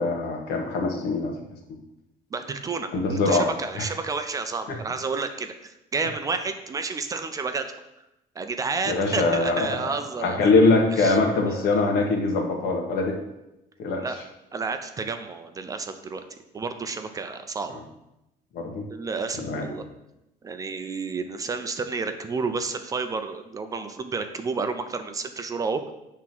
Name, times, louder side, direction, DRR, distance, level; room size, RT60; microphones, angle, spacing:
voice 1, 0.0-1.3 2.9-3.5 3.8-3.9 4.7-4.8 8.8-9.7 10.2-13.2 13.8-14.0 18.5-18.8 19.4-19.7, left 3 dB, 75° left, 2 dB, 1.5 m, -22 dB
voice 2, 2.3-7.7 8.4-10.5 11.0-11.2 11.5-11.7 14.0-14.2 14.5-16.2 16.5-17.8 18.9-19.8 20.4-25.9, right 4 dB, 20° right, 7 dB, 0.4 m, -31 dB
7.8 x 3.6 x 5.9 m, 0.90 s
cardioid pair, 165°, 16 cm